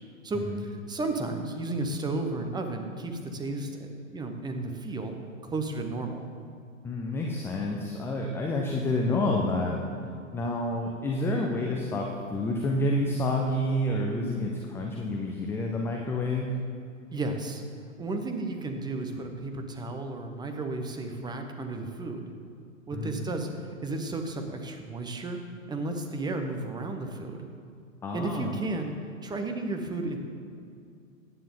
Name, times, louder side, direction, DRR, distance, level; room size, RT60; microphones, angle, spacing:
voice 1, 0.2-5.2 5.4-6.3 17.1-17.6 18.0-22.3 22.9-25.4 25.7-27.4 28.1-28.9 29.2-30.2, right 2 dB, 10° right, 5 dB, 0.9 m, -33 dB
voice 2, 6.8-9.8 10.3-16.5 22.9-23.2 28.0-28.6, left 1 dB, 5° left, 0 dB, 0.4 m, -29 dB
15.0 x 9.6 x 3.8 m, 2.4 s
hypercardioid pair, 115°, 41 cm